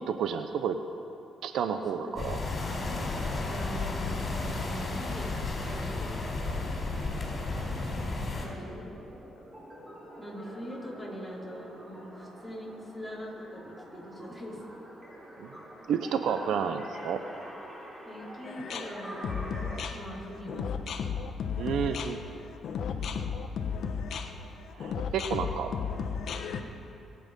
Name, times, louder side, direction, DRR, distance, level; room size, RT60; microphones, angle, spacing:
voice 1, 0.1-0.8 1.4-2.4 15.4-15.5 15.9-17.2 21.6-22.2 24.7-25.7, right 7 dB, 75° right, 8 dB, 0.7 m, -30 dB
sound 1, 2.2-8.5, left 3 dB, 40° left, 4.2 m, -33 dB
voice 2, 2.5-6.5 7.6-9.0 10.2-14.6 18.0-19.6 19.9-20.9, equal, 5° right, -5 dB, 4.6 m, -43 dB
sound 2, 5.5-19.8, equal, 25° right, 3.5 m, -47 dB
sound 3, 18.5-26.6, left 6 dB, 65° left, 1.1 m, -34 dB
25.0 x 8.7 x 5.4 m, 2.8 s
cardioid pair, 90°, 0 cm